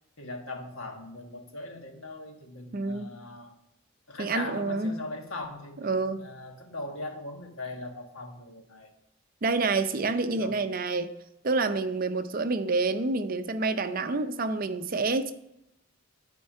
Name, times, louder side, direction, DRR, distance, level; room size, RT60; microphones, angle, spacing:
voice 1, 0.2-3.5 4.1-8.9 10.2-10.6, left 2 dB, 85° left, 3 dB, 1.4 m, -40 dB
voice 2, 2.7-3.1 4.2-5.0 5.8-6.3 9.4-11.1 11.4-15.3, right 3 dB, 45° right, 9 dB, 0.5 m, -28 dB
10.0 x 4.5 x 5.5 m, 0.86 s
head